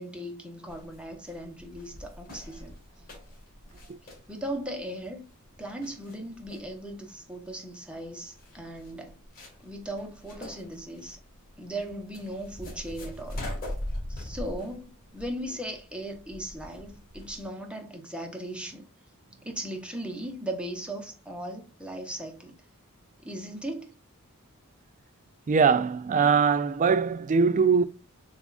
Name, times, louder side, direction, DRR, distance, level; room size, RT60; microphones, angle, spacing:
voice 1, 0.0-2.8 4.3-5.3 5.6-9.2 9.6-11.2 11.6-13.4 14.1-18.8 19.4-22.6 23.2-23.9, right 1 dB, 5° right, 0.9 m, -38 dB
sound 1, 0.7-17.5, left 1 dB, 40° left, 2.1 m, -42 dB
voice 2, 25.5-27.8, right 5 dB, 35° right, 0.3 m, -22 dB
6.9 x 2.4 x 2.4 m
head